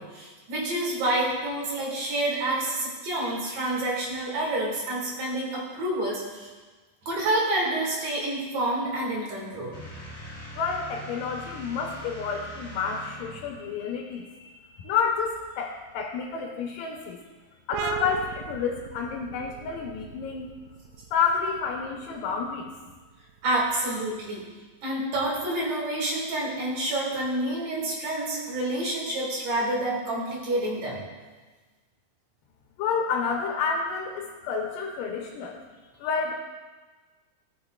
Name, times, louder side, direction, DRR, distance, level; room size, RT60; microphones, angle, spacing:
voice 1, 0.0-6.5 7.1-9.7 23.4-24.4 24.8-31.0, right 1 dB, 60° right, -4 dB, 3.2 m, -28 dB
sound 1, 9.7-13.6, right 1 dB, 30° left, 1.3 m, -42 dB
voice 2, 10.6-17.2 17.7-20.5 21.1-22.7 32.8-35.6 36.0-36.3, left 6 dB, 85° left, 1 dB, 2.5 m, -29 dB
sound 2, 17.7-25.0, right 8 dB, 85° right, 2.2 m, -39 dB
14.5 x 6.1 x 2.3 m, 1.3 s
omnidirectional pair, 3.8 m